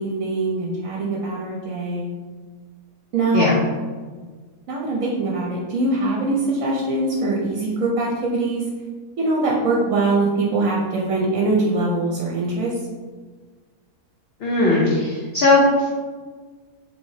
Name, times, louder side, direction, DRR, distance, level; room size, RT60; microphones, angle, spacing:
voice 1, 0.0-2.1 3.1-3.5 4.7-8.6 9.2-12.8, right 2 dB, 65° right, -3 dB, 1.0 m, -22 dB
voice 2, 14.4-15.9, left 2 dB, 55° left, -5 dB, 0.7 m, -18 dB
4.7 x 3.3 x 2.7 m, 1.4 s
omnidirectional pair, 1.7 m